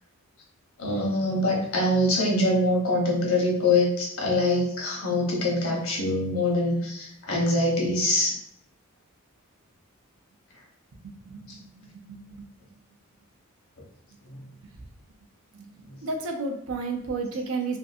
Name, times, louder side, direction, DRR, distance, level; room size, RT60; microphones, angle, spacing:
voice 1, 0.8-8.3, left 1 dB, 75° left, -2 dB, 0.8 m, -24 dB
voice 2, 11.0-12.5 15.5-17.8, right 3 dB, 70° right, 3 dB, 0.5 m, -33 dB
2.5 x 2.5 x 2.4 m, 0.73 s
head